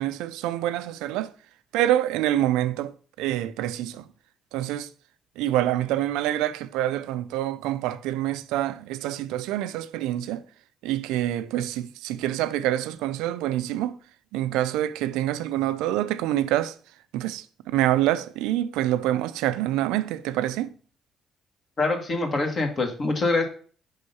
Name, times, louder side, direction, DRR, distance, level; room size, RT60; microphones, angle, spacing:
voice 1, 0.0-1.3 1.7-2.9 3.2-4.0 4.5-4.9 5.4-10.4 10.8-14.0 14.3-16.7 17.1-20.7, right 13 dB, 85° right, 0.3 m, -26 dB
voice 2, 21.8-23.5, left 3 dB, 50° left, 1.5 m, -24 dB
5.4 x 3.6 x 5.4 m
supercardioid pair, 65°, 0 cm